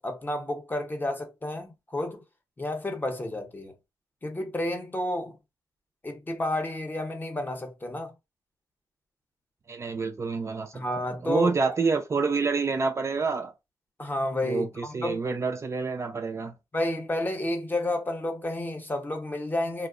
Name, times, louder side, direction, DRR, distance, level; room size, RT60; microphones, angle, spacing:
voice 1, 0.0-2.2 2.6-3.7 4.2-5.4 6.0-8.1 10.7-11.5 14.0-15.2 16.7-19.9, left 1 dB, 25° left, 0.7 m, -31 dB
voice 2, 9.7-10.8 11.2-13.5 14.4-16.5, right 4 dB, 35° right, 0.4 m, -28 dB
2.7 x 2.0 x 2.4 m
cardioid pair, 85°, 8 cm